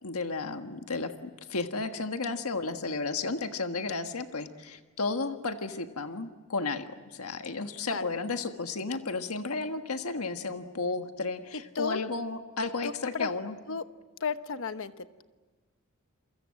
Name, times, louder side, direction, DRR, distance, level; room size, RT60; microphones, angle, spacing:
voice 1, 0.0-13.6, left 3 dB, 90° left, 7 dB, 1.5 m, -33 dB
voice 2, 12.8-13.3 13.7-13.8 14.2-15.2, left 5 dB, 65° left, 10 dB, 1.1 m, -33 dB
28.5 x 23.5 x 7.7 m, 1.3 s
head